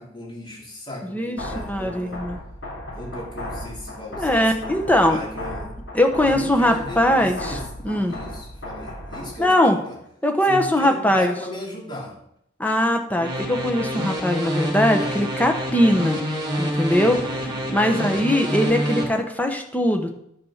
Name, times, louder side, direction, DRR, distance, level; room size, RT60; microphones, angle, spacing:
voice 1, 0.0-2.2 2.9-5.8 6.2-10.0 10.4-12.2 17.3-18.2, left 1 dB, 25° left, -3 dB, 3.4 m, -37 dB
sound 1, 1.4-9.4, left 1 dB, 70° left, 3.6 m, -35 dB
voice 2, 1.7-2.4 4.2-5.2 5.9-7.5 7.8-8.2 9.4-9.8 10.2-11.3 12.6-16.2 16.6-17.2 17.7-20.1, left 1 dB, 10° left, 4 dB, 1.2 m, -20 dB
sound 2, 13.2-19.0, equal, 20° right, 2.1 m, -27 dB
10.5 x 7.3 x 5.8 m, 0.73 s
head